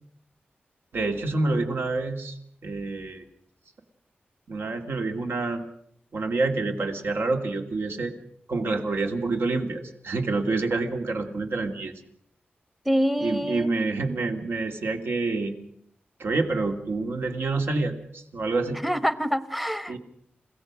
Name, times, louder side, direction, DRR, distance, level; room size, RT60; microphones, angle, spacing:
voice 1, 0.9-2.4 2.6-3.2 4.5-5.6 6.1-8.1 8.5-11.9 13.2-15.5 16.2-18.8 19.9-20.0, right 3 dB, 75° right, 5 dB, 2.3 m, -27 dB
voice 2, 12.9-13.7 18.8-20.0, equal, 5° right, 15 dB, 0.9 m, -26 dB
30.0 x 16.5 x 6.2 m, 0.71 s
wide cardioid pair, 155°, 4 cm